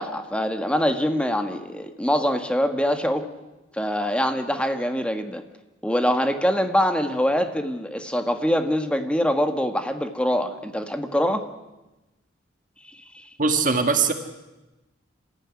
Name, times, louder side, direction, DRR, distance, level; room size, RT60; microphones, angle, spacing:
voice 1, 0.0-3.3 3.7-5.4 5.8-11.5 13.1-13.2, equal, 5° left, 6 dB, 1.6 m, -24 dB
voice 2, 13.4-14.1, right 4 dB, 45° right, 6 dB, 1.7 m, -20 dB
26.5 x 15.0 x 9.8 m, 1.0 s
head